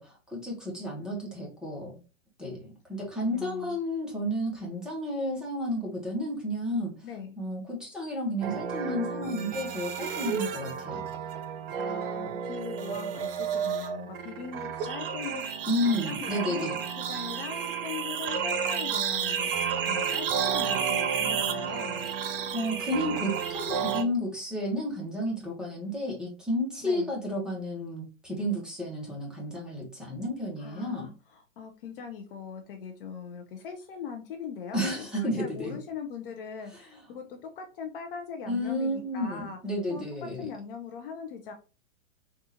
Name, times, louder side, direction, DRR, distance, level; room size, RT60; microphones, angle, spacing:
voice 1, 0.0-2.0 2.4-6.9 7.4-11.0 15.7-16.8 22.5-31.1 34.7-35.8 38.5-40.5, equal, ahead, -3 dB, 0.9 m, -32 dB
voice 2, 3.0-3.8 7.0-7.4 11.8-16.7 17.0-22.1 26.8-27.1 30.6-39.6 39.9-40.0 40.4-41.5, left 6 dB, 45° left, 5 dB, 0.5 m, -40 dB
sound 1, 8.4-24.0, right 7 dB, 45° right, 0.5 m, -31 dB
3.7 x 2.4 x 2.7 m, 0.34 s
hypercardioid pair, 120°, 40 cm